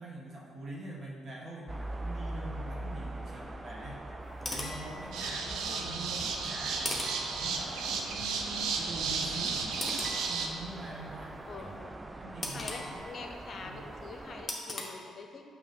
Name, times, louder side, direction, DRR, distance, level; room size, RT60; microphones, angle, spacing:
voice 1, 0.0-4.0 4.4-7.0 7.4-11.7 12.2-13.1 13.5-13.9, right 2 dB, 50° right, -3 dB, 1.4 m, -44 dB
sound 1, 1.7-14.5, right 1 dB, 20° right, 0.4 m, -43 dB
sound 2, 4.2-5.7 6.8-8.1 9.8-11.1 12.4-13.7 14.5-14.8, left 2 dB, 25° left, 1.0 m, -40 dB
sound 3, 5.1-10.5, right 5 dB, 80° right, 0.5 m, -34 dB
voice 2, 5.2-5.8 8.4-8.6 11.5-12.0 12.5-15.4, left 4 dB, 50° left, 4 dB, 0.7 m, -45 dB
6.6 x 2.8 x 5.2 m, 2.3 s
cardioid pair, 75°, 0 cm